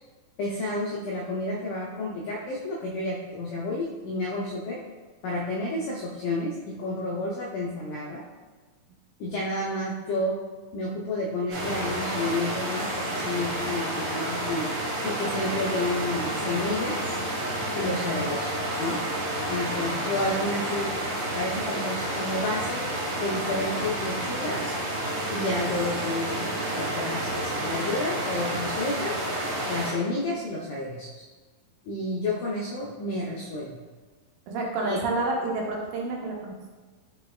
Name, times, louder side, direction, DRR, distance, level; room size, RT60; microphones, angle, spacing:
voice 1, 0.4-4.8 5.2-8.2 9.2-10.4 10.7-14.7 15.0-17.1 17.7-19.0 19.5-21.1 21.3-22.9 23.2-24.7 25.3-26.5 26.7-29.2 29.7-31.2 31.9-33.8 34.8-35.0, left 2 dB, 85° left, -4 dB, 1.8 m, -30 dB
sound 1, 11.5-29.9, right 1 dB, 65° right, 2.8 m, -30 dB
voice 2, 17.8-18.2 34.5-36.6, right 2 dB, 85° right, -1 dB, 2.4 m, -29 dB
5.6 x 4.1 x 2.3 m, 1.3 s
omnidirectional pair, 4.2 m